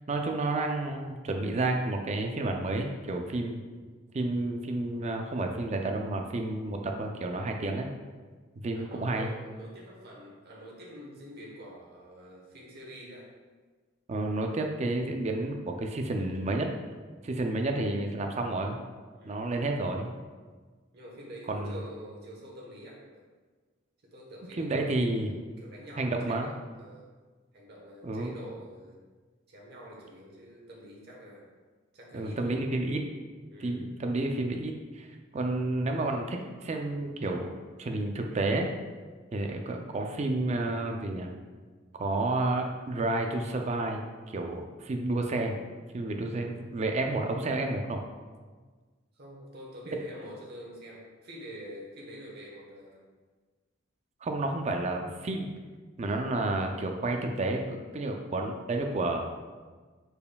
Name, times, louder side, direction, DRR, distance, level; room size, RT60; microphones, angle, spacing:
voice 1, 0.1-3.6 4.1-7.9 8.5-9.3 14.1-16.7 17.2-18.8 19.3-20.1 21.5-21.8 24.6-25.3 26.0-26.5 28.0-28.4 32.1-33.0 33.6-35.1 35.3-37.5 37.8-38.7 39.3-41.3 42.0-45.6 45.9-48.0 54.2-55.5 56.0-59.2, right 2 dB, 35° right, 3 dB, 0.4 m, -30 dB
voice 2, 8.7-13.3 19.2-19.5 20.9-23.2 24.0-25.1 25.6-27.1 27.5-29.0 29.5-31.4 31.9-32.6 33.5-33.8 49.1-53.0, equal, 55° right, -4 dB, 1.1 m, -46 dB
5.1 x 4.6 x 2.3 m, 1.4 s
head